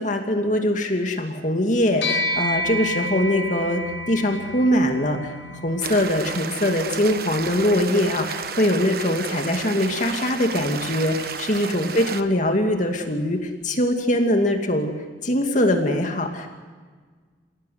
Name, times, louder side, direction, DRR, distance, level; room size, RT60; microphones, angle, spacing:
voice 1, 0.0-14.9 15.2-16.5, left 1 dB, 40° left, 4 dB, 2.5 m, -22 dB
sound 1, 2.0-11.6, left 1 dB, 80° left, 5.8 m, -32 dB
sound 2, 5.8-12.2, right 5 dB, 55° right, 1.3 m, -32 dB
29.0 x 17.5 x 9.4 m, 1.5 s
head